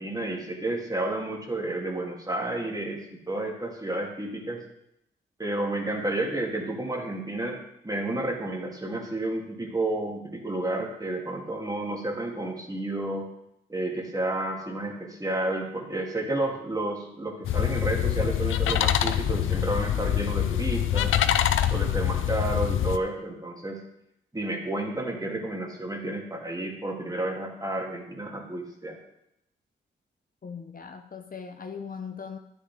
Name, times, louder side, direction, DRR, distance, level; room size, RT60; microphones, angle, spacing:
voice 1, 0.0-4.6 5.4-13.3 13.7-21.2 21.7-23.8 24.3-29.0, right 2 dB, 20° right, 1 dB, 2.3 m, -31 dB
sound 1, 17.4-23.0, left 11 dB, 75° left, 0.5 m, -25 dB
voice 2, 30.4-32.4, left 6 dB, 45° left, 6 dB, 0.8 m, -39 dB
9.8 x 8.4 x 3.6 m, 0.80 s
supercardioid pair, 50°, 20 cm